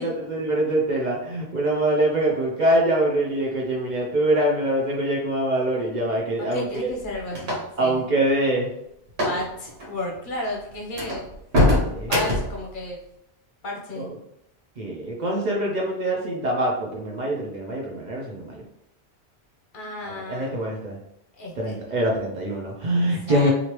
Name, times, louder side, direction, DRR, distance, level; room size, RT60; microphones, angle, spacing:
voice 1, 0.0-6.9 7.8-8.7 9.3-9.4 11.7-12.2 14.0-14.2 14.8-18.6 20.0-20.9 21.6-23.5, right 1 dB, 50° right, -2 dB, 0.6 m, -24 dB
voice 2, 6.4-8.0 9.2-11.3 12.1-13.0 13.6-14.1 19.7-20.5 21.4-21.8 23.3-23.5, left 1 dB, 55° left, -1 dB, 0.8 m, -33 dB
sound 1, 6.5-7.9 9.1-9.4 9.7-9.9 10.4-10.5 10.9-12.6, left 1 dB, 70° right, 1.2 m, -23 dB
3.1 x 2.5 x 2.9 m, 0.80 s
omnidirectional pair, 1.1 m